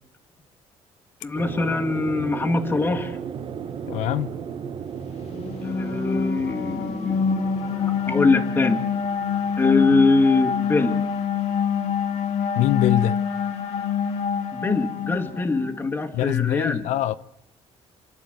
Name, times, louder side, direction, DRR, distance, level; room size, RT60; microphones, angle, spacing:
voice 1, 1.2-3.2 5.6-8.8 9.6-11.0 14.5-16.8, left 3 dB, 15° left, 1.9 m, -23 dB
sound 1, 1.3-11.1, right 7 dB, 45° right, 1.1 m, -36 dB
voice 2, 3.9-4.3 12.6-13.2 16.1-17.1, left 14 dB, 85° left, 0.7 m, -23 dB
sound 2, 5.2-15.8, left 6 dB, 60° left, 1.9 m, -26 dB
28.0 x 12.0 x 7.9 m
cardioid pair, 145°, 12 cm